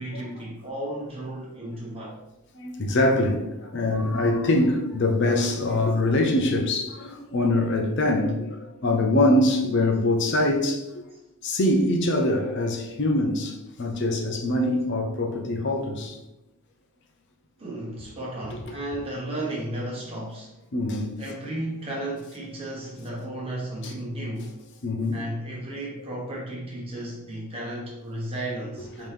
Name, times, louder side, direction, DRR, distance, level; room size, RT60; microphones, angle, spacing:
voice 1, 0.0-2.2 17.6-20.6 21.2-24.6 25.1-29.1, right 1 dB, 25° right, 1.2 m, -34 dB
voice 2, 2.5-11.0 11.4-16.2 20.7-21.1 23.8-23.9 24.8-25.2, left 1 dB, 50° left, 0.6 m, -24 dB
5.3 x 3.0 x 3.4 m
head